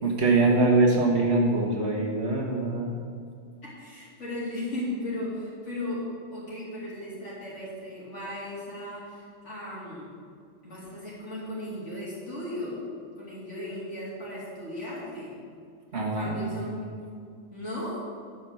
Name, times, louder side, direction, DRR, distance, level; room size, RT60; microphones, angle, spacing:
voice 1, 0.0-3.0 15.9-16.5, right 2 dB, 55° right, 0 dB, 1.7 m, -23 dB
voice 2, 3.6-10.1 10.6-12.8 13.2-15.4 16.1-16.7 17.0-17.2 17.5-18.0, left 1 dB, 65° left, -7 dB, 3.6 m, -36 dB
10.5 x 5.6 x 6.9 m, 2.2 s
omnidirectional pair, 1.3 m